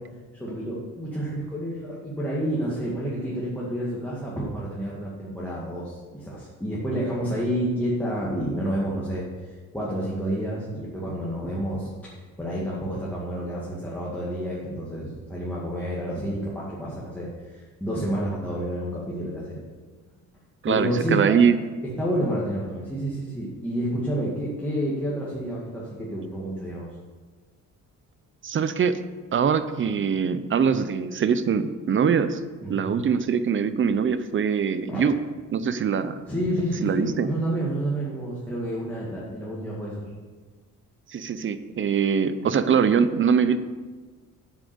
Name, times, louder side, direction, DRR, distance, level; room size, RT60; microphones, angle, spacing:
voice 1, 0.3-19.6 20.7-21.4 22.0-26.9 32.6-32.9 34.9-35.0 36.3-40.1, right 1 dB, 5° left, -7 dB, 2.2 m, -29 dB
voice 2, 20.6-21.6 28.4-29.0 29.3-32.4 32.7-35.2 35.5-36.2 36.8-37.3 41.1-43.6, right 6 dB, 35° right, 12 dB, 0.7 m, -23 dB
8.9 x 7.4 x 7.1 m, 1.4 s
cardioid pair, 125°, 34 cm